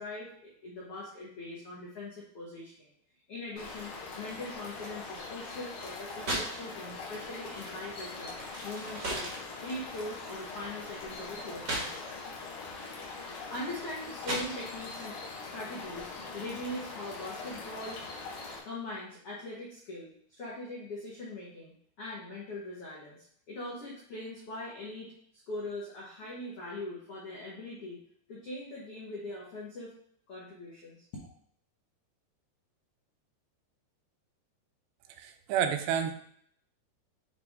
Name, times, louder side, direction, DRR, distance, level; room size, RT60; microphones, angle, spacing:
voice 1, 0.0-2.9 3.3-8.3 8.6-9.3 9.6-12.0 13.2-18.0 18.6-25.1 25.5-28.0 28.3-29.9 30.3-31.0, left 2 dB, 80° left, -6 dB, 1.3 m, -41 dB
sound 1, 3.6-18.6, left 3 dB, 60° left, 2.4 m, -42 dB
sound 2, 5.5-6.7 6.9-12.3 12.7-15.0, right 1 dB, 55° right, 1.0 m, -38 dB
voice 2, 35.2-36.1, right 8 dB, 85° right, 7 dB, 2.8 m, -29 dB
9.1 x 3.4 x 3.6 m, 0.64 s
omnidirectional pair, 4.9 m